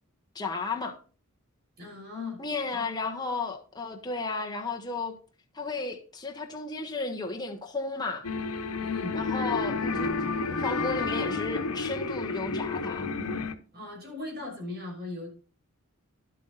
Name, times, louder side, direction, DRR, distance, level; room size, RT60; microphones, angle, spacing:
voice 1, 0.3-1.0 2.4-5.1 5.5-8.3 9.1-13.1, left 3 dB, 20° left, 1.3 m, -33 dB
voice 2, 1.8-2.4 2.7-2.9 8.8-9.2 13.7-15.3, left 3 dB, 45° right, 6.7 m, -38 dB
sound 1, 8.2-13.5, left 4 dB, 85° left, 1.1 m, -30 dB
11.5 x 8.3 x 4.0 m
head